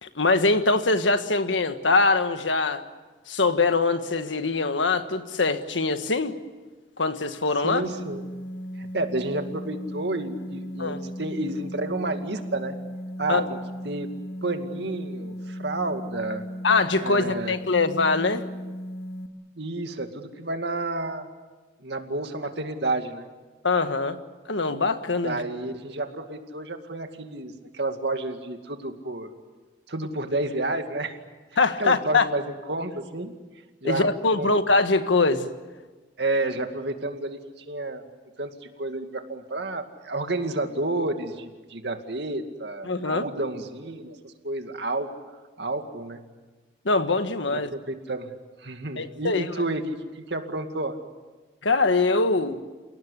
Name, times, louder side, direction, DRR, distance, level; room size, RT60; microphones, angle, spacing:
voice 1, 0.0-2.8 3.3-6.4 7.0-7.8 10.8-11.0 13.3-13.4 16.6-18.4 23.6-24.2 24.5-25.4 31.6-32.2 33.8-35.5 42.9-43.2 46.8-47.7 49.0-49.5 51.6-52.6, left 3 dB, 85° left, 9 dB, 1.6 m, -23 dB
voice 2, 7.6-8.2 8.8-12.8 13.2-13.6 13.8-14.1 14.4-16.4 17.0-17.6 19.6-21.3 21.8-23.3 25.2-29.3 29.9-31.2 31.8-33.3 33.8-34.1 34.4-34.5 36.2-38.0 38.4-45.1 45.6-46.2 47.4-48.3 48.6-51.0, right 2 dB, 65° right, 6 dB, 2.3 m, -30 dB
sound 1, 7.8-19.3, equal, 65° left, 2.4 m, -36 dB
29.0 x 17.5 x 9.8 m, 1.3 s
head